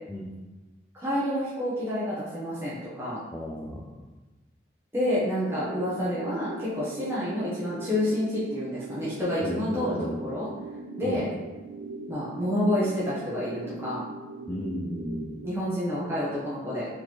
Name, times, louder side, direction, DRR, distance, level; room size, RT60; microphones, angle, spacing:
voice 1, 0.9-3.2 4.9-10.5 11.0-11.3 12.1-14.0 15.4-16.9, left 1 dB, 15° right, -9 dB, 0.8 m, -29 dB
voice 2, 3.3-4.0 9.4-10.2 11.0-11.3 14.5-15.3, equal, 10° left, -4 dB, 0.3 m, -34 dB
sound 1, 5.5-15.5, right 3 dB, 85° right, 0.4 m, -40 dB
4.2 x 3.2 x 2.9 m, 1.1 s
head